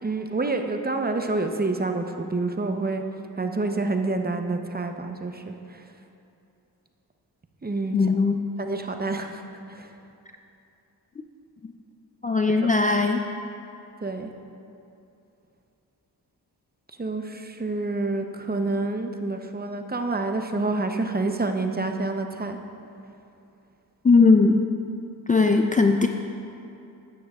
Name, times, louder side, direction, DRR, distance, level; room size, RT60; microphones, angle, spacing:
voice 1, 0.0-3.0 3.4-5.8 7.6-8.0 8.6-9.4 9.7-9.9 12.6-12.7 14.0-14.3 17.0-22.6, right 3 dB, 25° right, 5 dB, 0.7 m, -28 dB
voice 2, 7.9-8.3 12.2-13.2 24.0-24.6 25.3-26.1, left 4 dB, 20° left, 4 dB, 0.4 m, -18 dB
12.0 x 8.8 x 2.4 m, 2.7 s
cardioid pair, 55°, 40 cm